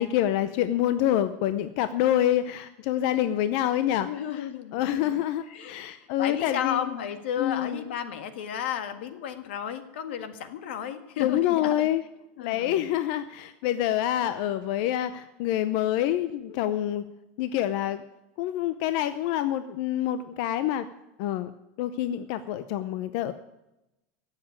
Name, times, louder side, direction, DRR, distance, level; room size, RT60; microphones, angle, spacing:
voice 1, 0.0-6.9 7.4-7.8 11.2-12.0 12.4-17.0 17.4-18.0 18.4-20.9 21.2-21.5 21.8-23.3, left 12 dB, 50° left, 12 dB, 0.6 m, -27 dB
voice 2, 4.0-5.2 5.5-11.9 12.4-12.9, left 9 dB, 85° left, 10 dB, 1.7 m, -33 dB
16.0 x 7.4 x 8.7 m, 0.94 s
supercardioid pair, 165°, 6 cm